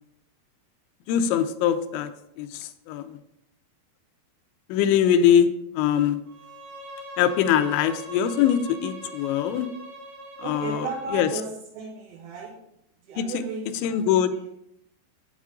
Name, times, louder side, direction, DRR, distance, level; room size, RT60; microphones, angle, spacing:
voice 1, 1.1-2.1 2.4-3.2 4.7-5.5 5.7-6.2 7.2-9.7 10.4-10.9 11.1-11.3 13.2-13.3 13.8-14.3, left 9 dB, 85° left, 9 dB, 3.0 m, -22 dB
Bowed string instrument, 6.3-11.4, equal, 90° right, 3.8 m, -42 dB
voice 2, 10.4-12.5 13.0-14.5, right 5 dB, 70° right, -4 dB, 2.7 m, -35 dB
8.4 x 8.2 x 3.7 m, 0.78 s
omnidirectional pair, 5.2 m